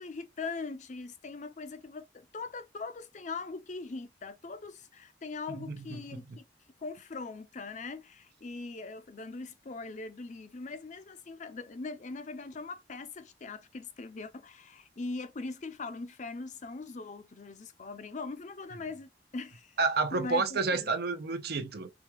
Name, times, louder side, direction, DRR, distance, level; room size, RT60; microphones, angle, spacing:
voice 1, 0.0-6.4 6.8-19.8 20.1-20.9, left 3 dB, 45° left, 0.6 m, -41 dB
voice 2, 5.6-6.4 19.8-21.9, right 4 dB, 60° right, 0.6 m, -30 dB
4.8 x 2.3 x 2.9 m
head